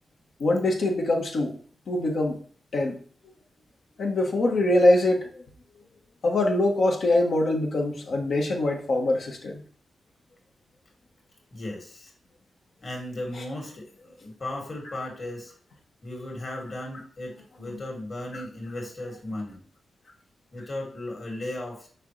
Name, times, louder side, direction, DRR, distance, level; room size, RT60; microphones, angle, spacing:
voice 1, 0.4-1.6 1.9-2.4 2.7-3.0 4.0-5.5 6.2-9.6 13.3-13.4 17.6-17.8 18.3-18.4, left 1 dB, 75° left, 0 dB, 1.4 m, -23 dB
voice 2, 11.5-12.1 12.8-15.5 16.0-19.6 20.5-21.9, left 1 dB, 55° left, 0 dB, 2.6 m, -36 dB
6.4 x 5.1 x 3.3 m, 0.43 s
cardioid pair, 70°, 0 cm